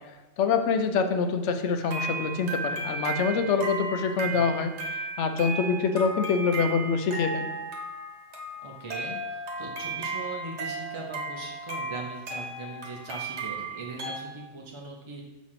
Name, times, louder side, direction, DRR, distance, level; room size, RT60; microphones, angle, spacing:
voice 1, 0.1-7.5, left 5 dB, 75° left, 7 dB, 0.9 m, -26 dB
sound 1, 1.8-14.2, right 3 dB, 65° right, 1.3 m, -35 dB
voice 2, 8.6-15.2, right 3 dB, 35° right, -1 dB, 0.5 m, -40 dB
6.2 x 3.1 x 5.7 m, 1.1 s
omnidirectional pair, 1.2 m